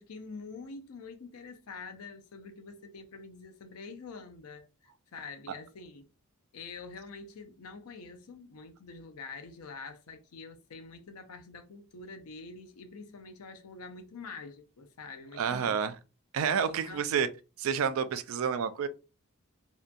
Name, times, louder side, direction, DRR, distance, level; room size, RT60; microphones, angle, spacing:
voice 1, 0.0-6.1 6.5-15.8 16.7-17.1, left 4 dB, 85° left, 0.5 m, -46 dB
voice 2, 15.4-15.9 16.3-17.3 17.6-18.9, right 7 dB, 70° right, 0.3 m, -29 dB
2.7 x 2.2 x 2.5 m
head